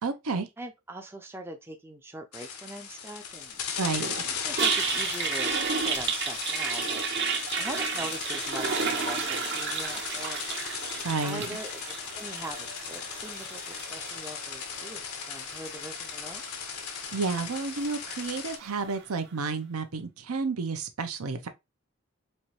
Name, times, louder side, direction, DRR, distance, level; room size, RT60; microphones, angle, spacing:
voice 1, 0.0-0.5 3.8-4.2 11.0-11.5 17.1-21.5, right 4 dB, 85° right, 0.7 m, -31 dB
voice 2, 0.6-3.6 4.4-5.5 5.8-7.0 7.3-10.4 11.2-11.7 12.1-16.4, right 1 dB, 10° right, 0.4 m, -42 dB
sound 1, 2.3-18.6, left 7 dB, 85° left, 0.8 m, -37 dB
Toilet flush, 3.8-19.0, right 6 dB, 50° right, 0.7 m, -33 dB
4.3 x 2.6 x 3.0 m
head